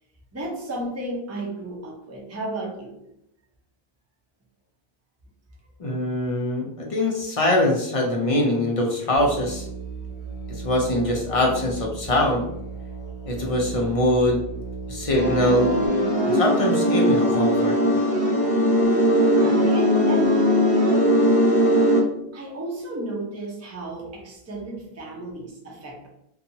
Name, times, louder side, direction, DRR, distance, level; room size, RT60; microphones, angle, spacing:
voice 1, 0.3-3.0 19.3-20.5 22.3-26.1, right 2 dB, 20° right, -2 dB, 0.5 m, -33 dB
voice 2, 5.8-9.7 10.5-12.4 13.3-14.4 14.9-15.7 16.3-17.8, left 1 dB, 45° left, -1 dB, 0.4 m, -23 dB
Musical instrument, 9.1-15.9, right 5 dB, 35° right, 0.9 m, -36 dB
sound 1, 15.1-22.0, equal, 25° left, 1.1 m, -19 dB
2.8 x 2.3 x 2.7 m, 0.80 s
omnidirectional pair, 1.1 m